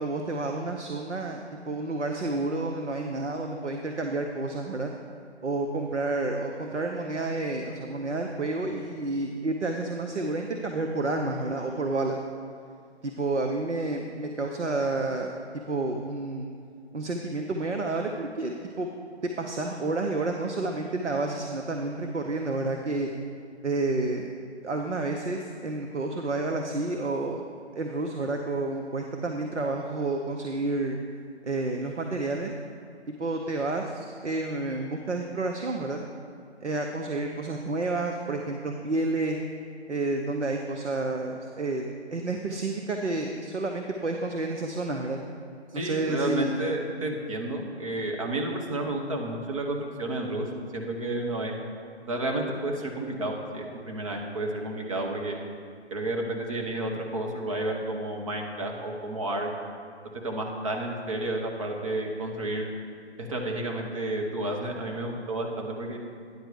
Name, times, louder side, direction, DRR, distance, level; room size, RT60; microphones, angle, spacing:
voice 1, 0.0-4.9 5.4-12.2 13.0-15.3 15.7-16.5 16.9-18.9 19.4-23.1 23.6-24.3 24.6-31.0 31.4-32.5 33.2-36.0 36.6-39.4 39.9-45.2 45.7-46.5, right 2 dB, 85° right, 3 dB, 0.7 m, -30 dB
voice 2, 45.7-50.5 50.7-51.6 52.1-55.4 55.9-59.5 60.2-62.7 63.2-66.0, right 1 dB, 30° right, 1 dB, 0.8 m, -31 dB
9.6 x 4.5 x 6.5 m, 2.4 s
figure-of-eight pair, 140°, 34 cm